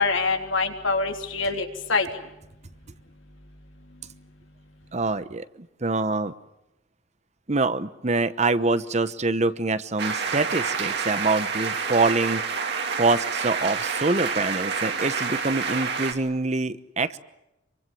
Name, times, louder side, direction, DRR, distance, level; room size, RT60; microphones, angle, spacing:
voice 1, 0.0-2.1, left 4 dB, 80° left, 4 dB, 3.5 m, -24 dB
voice 2, 4.9-6.3 7.5-12.4 13.0-17.2, right 3 dB, 35° right, 13 dB, 1.0 m, -25 dB
sound 1, 10.0-16.1, right 5 dB, 60° right, 3.1 m, -28 dB
26.5 x 24.5 x 7.6 m, 0.91 s
head